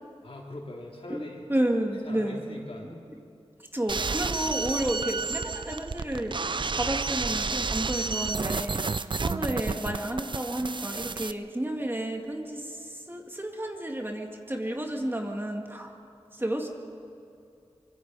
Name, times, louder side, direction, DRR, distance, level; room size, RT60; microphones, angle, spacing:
voice 1, 0.2-1.4 2.0-2.9, left 1 dB, 65° left, -2 dB, 3.7 m, -41 dB
voice 2, 1.5-2.4 2.8-3.0 3.7-6.4 6.7-9.0 9.2-15.9 16.3-16.7, right 1 dB, 20° right, 2 dB, 2.0 m, -31 dB
sound 1, 3.9-11.3, right 4 dB, 50° right, 0.5 m, -31 dB
24.5 x 23.0 x 4.8 m, 2.7 s
wide cardioid pair, 75°, 10 cm